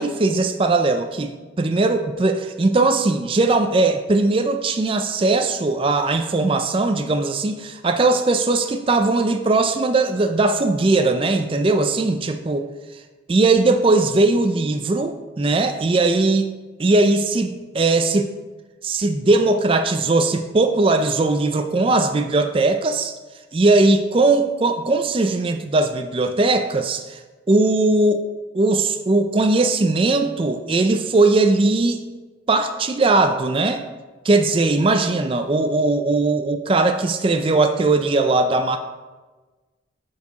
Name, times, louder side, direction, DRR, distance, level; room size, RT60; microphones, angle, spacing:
voice 1, 0.0-12.7 13.3-16.5 16.8-18.3 18.8-23.2 23.5-27.2 27.5-28.3 28.5-32.0 32.5-33.8 34.2-38.8, right 2 dB, 25° right, 7 dB, 0.4 m, -19 dB
6.9 x 4.7 x 6.7 m, 1.3 s
head